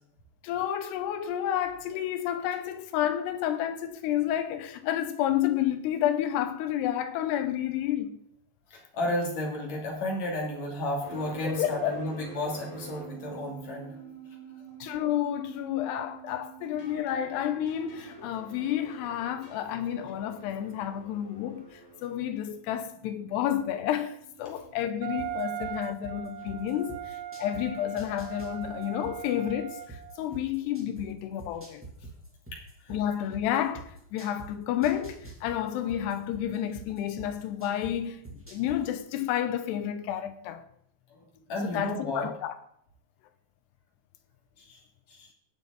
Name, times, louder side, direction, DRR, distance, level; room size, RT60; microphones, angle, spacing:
voice 1, 0.4-8.2 11.4-12.0 14.8-31.8 32.9-40.6 41.6-42.5, left 11 dB, 85° left, 2.8 m, -30 dB
voice 2, 8.7-14.1 32.5-32.6 41.1-41.2 41.5-42.3 44.6-44.8 45.1-45.3, left 1 dB, 45° left, 3.4 m, -32 dB
sound 1, 11.0-24.8, right 4 dB, 25° left, 0.8 m, -48 dB
Wind instrument woodwind instrument, 25.0-30.3, right 13 dB, 80° right, 2.4 m, -39 dB
sound 2, 25.2-27.6 28.0-31.0 31.4-34.5 34.8-37.9 38.2-38.8, right 3 dB, 5° right, 1.6 m, -44 dB
18.0 x 7.0 x 4.0 m
omnidirectional pair, 5.0 m